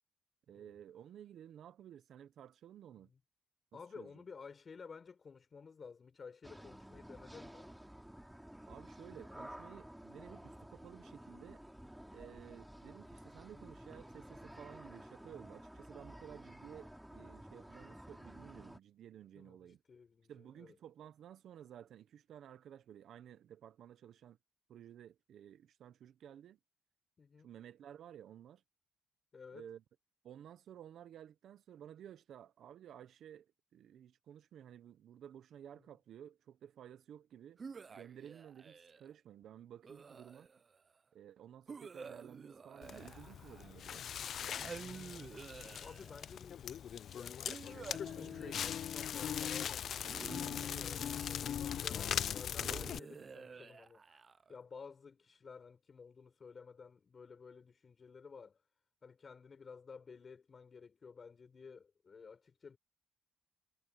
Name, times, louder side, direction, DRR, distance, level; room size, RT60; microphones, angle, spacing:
voice 1, 0.5-3.1 4.0-4.1 8.7-11.6 12.1-19.8 20.3-24.4 24.7-26.6 27.4-28.6 29.5-29.8 30.2-37.6 37.9-40.5 41.1-44.1, right 10 dB, 70° right, 0.9 m, -54 dB
voice 2, 3.7-7.7 13.4-13.6 19.3-20.8 27.2-27.5 29.3-29.7 35.7-35.9 45.8-46.7 47.0-58.6 59.0-62.8, left 5 dB, 40° left, 5.8 m, -54 dB
sound 1, 6.4-18.8, equal, 5° right, 3.3 m, -53 dB
sound 2, 37.6-39.1 39.8-40.8 41.7-43.9 44.5-46.3 47.5-49.2 50.0-51.7 52.6-54.6, right 5 dB, 40° right, 0.6 m, -51 dB
Crackle, 42.8-53.0, left 9 dB, 65° left, 0.5 m, -40 dB
cardioid pair, 90°, 0 cm